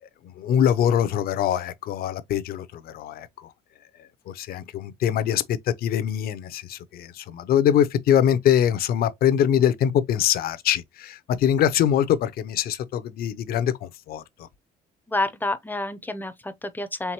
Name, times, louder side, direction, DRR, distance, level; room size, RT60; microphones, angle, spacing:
voice 1, 0.0-3.5 4.0-14.5, left 10 dB, 65° left, 0.6 m, -23 dB
voice 2, 15.1-17.1, left 2 dB, 10° left, 0.6 m, -29 dB
4.5 x 3.5 x 2.9 m
cardioid pair, 110°, 17 cm